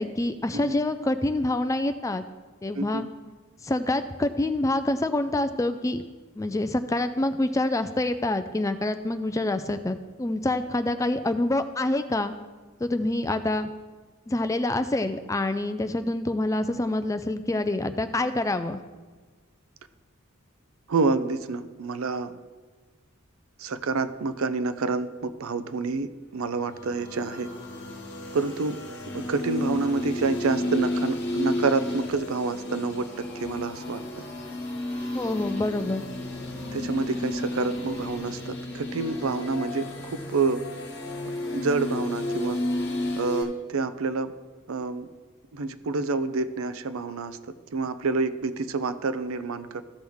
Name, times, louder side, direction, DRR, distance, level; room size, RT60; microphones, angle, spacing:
voice 1, 0.0-2.2 2.6-3.1 3.6-6.0 6.4-12.3 12.8-13.7 14.3-18.8 35.1-36.0, left 2 dB, 15° left, 10 dB, 0.4 m, -26 dB
voice 2, 2.7-3.1 20.9-22.4 23.6-27.5 28.3-28.8 29.1-34.0 36.7-40.6 41.5-42.6 43.2-44.3 44.7-45.1 45.5-47.4 47.7-49.8, right 4 dB, 85° right, 12 dB, 0.5 m, -28 dB
sound 1, 26.5-43.4, left 1 dB, 50° left, 1.5 m, -32 dB
14.5 x 6.2 x 3.5 m, 1.3 s
head